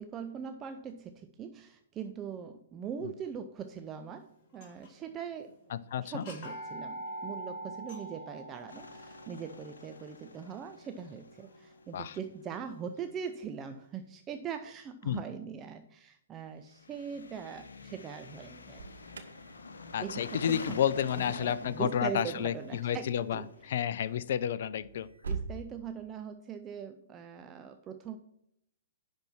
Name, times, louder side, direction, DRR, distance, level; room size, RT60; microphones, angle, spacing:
voice 1, 0.0-5.6 6.0-18.8 20.0-20.8 21.1-23.7 25.3-28.2, right 7 dB, 20° right, 7 dB, 0.5 m, -41 dB
sound 1, 4.5-5.1 5.5-5.6 6.1-12.0, right 1 dB, 30° left, 2.9 m, -45 dB
voice 2, 5.7-6.2 11.9-12.2 15.1-15.2 19.9-25.1, left 9 dB, 55° left, 16 dB, 0.5 m, -31 dB
sound 2, 8.7-12.5 16.7-24.4, left 3 dB, 70° left, 1.0 m, -48 dB
Alarm, 18.6-25.6, right 4 dB, 70° right, 1.0 m, -46 dB
10.5 x 4.4 x 5.7 m, 0.76 s
figure-of-eight pair, 115°, 0 cm